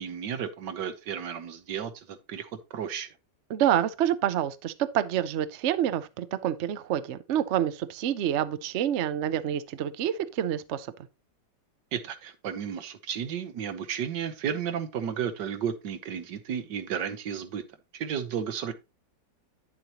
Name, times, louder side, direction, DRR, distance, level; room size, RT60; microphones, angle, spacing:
voice 1, 0.0-3.1 11.9-17.6 17.9-18.7, right 8 dB, 80° right, 1.6 m, -33 dB
voice 2, 3.5-10.9, right 10 dB, 65° right, 0.7 m, -27 dB
9.4 x 7.6 x 2.9 m
omnidirectional pair, 1.9 m